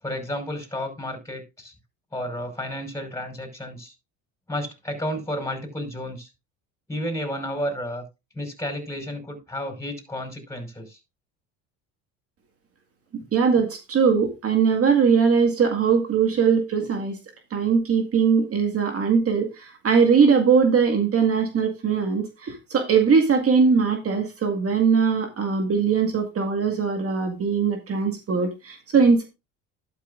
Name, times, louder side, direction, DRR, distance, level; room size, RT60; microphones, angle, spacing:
voice 1, 0.0-1.7 2.1-3.9 4.5-6.3 6.9-8.0 8.3-11.0, equal, 10° left, 5 dB, 5.2 m, -32 dB
voice 2, 13.3-17.2 17.5-29.2, right 6 dB, 40° right, 4 dB, 1.9 m, -21 dB
12.0 x 9.1 x 2.5 m, 0.26 s
supercardioid pair, 85°, 37 cm